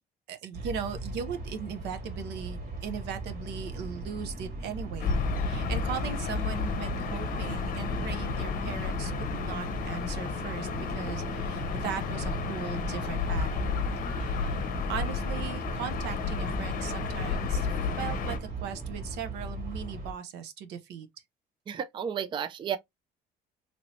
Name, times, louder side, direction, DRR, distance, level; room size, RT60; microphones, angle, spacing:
voice 1, 0.3-5.1 5.4-13.8 14.0-14.6 14.9-17.7 18.0-21.1, right 8 dB, 85° right, 0.7 m, -38 dB
sound 1, 0.5-20.1, right 2 dB, 60° right, 1.8 m, -38 dB
sound 2, 3.5-19.1, left 1 dB, 5° left, 0.7 m, -47 dB
Gull seagull / Ocean, 5.0-18.4, left 5 dB, 55° left, 0.7 m, -32 dB
voice 2, 21.7-22.8, right 8 dB, 30° right, 0.3 m, -32 dB
3.0 x 2.7 x 3.0 m
cardioid pair, 110°, 17 cm